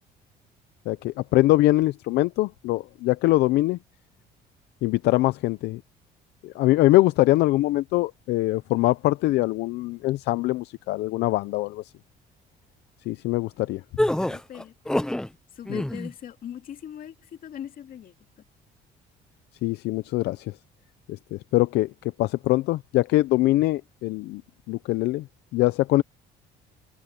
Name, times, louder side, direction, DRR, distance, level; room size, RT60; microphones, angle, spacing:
voice 1, 0.9-3.8 4.8-5.8 6.4-11.8 13.1-13.8 15.7-15.8 19.6-20.5 21.3-21.9 22.2-24.4 24.7-25.3 25.5-26.0, left 18 dB, 80° left, 0.6 m, -23 dB
sound 1, 14.0-15.3 15.6-16.1, left 1 dB, 5° left, 0.4 m, -26 dB
voice 2, 14.3-14.7 15.5-18.1, left 10 dB, 55° left, 2.4 m, -40 dB
cardioid pair, 110°, 17 cm